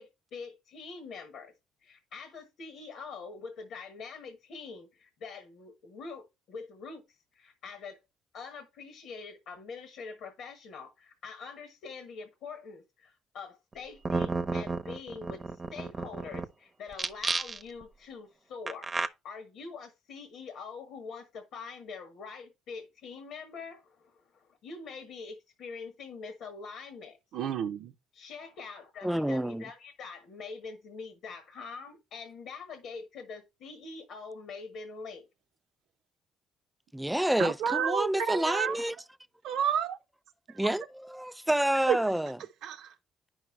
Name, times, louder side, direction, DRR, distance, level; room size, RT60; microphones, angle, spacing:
voice 1, 0.0-1.5 1.8-7.0 7.3-8.0 8.3-15.4 15.7-18.9 19.2-27.2 28.1-35.3, left 5 dB, 70° left, 1.3 m, -44 dB
sound 1, 13.7-13.8 14.0-16.4 16.9-17.8 18.7-19.1, right 3 dB, 35° right, 0.9 m, -31 dB
voice 2, 27.3-27.9 37.4-38.8 39.4-40.0 41.9-42.0 42.6-42.9, right 8 dB, 75° right, 0.7 m, -30 dB
voice 3, 29.0-29.6 36.9-39.0 40.5-42.4, right 1 dB, 5° right, 0.4 m, -28 dB
9.6 x 5.6 x 3.2 m
supercardioid pair, 75°, 0 cm